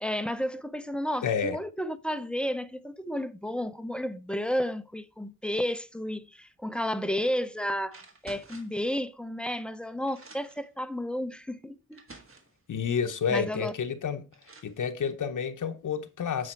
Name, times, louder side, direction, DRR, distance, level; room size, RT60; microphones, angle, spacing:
voice 1, 0.0-8.0 8.2-12.0 13.3-13.7, equal, 5° left, 0.5 m, -32 dB
voice 2, 1.2-1.6 12.7-14.3 14.6-16.5, left 6 dB, 75° left, 0.8 m, -30 dB
sound 1, 7.2-7.4 7.9-8.8 9.7-9.8 10.0-10.7 11.5-11.6 11.9-12.6 13.9-14.0 14.3-14.8, right 3 dB, 45° right, 1.6 m, -51 dB
8.8 x 5.0 x 4.4 m
wide cardioid pair, 150°, 31 cm